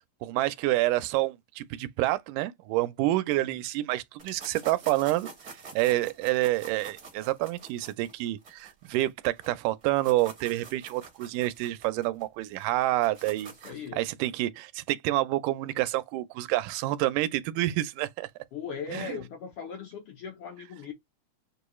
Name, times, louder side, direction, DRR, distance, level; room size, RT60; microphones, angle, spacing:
voice 1, 0.2-18.3 18.9-19.2, right 17 dB, 85° right, 2.1 m, -28 dB
sound 1, 4.2-9.5 9.8-13.9, right 4 dB, 60° right, 0.8 m, -47 dB
voice 2, 13.6-14.1 18.5-20.9, left 6 dB, 85° left, 1.1 m, -38 dB
6.7 x 2.3 x 3.0 m
omnidirectional pair, 3.6 m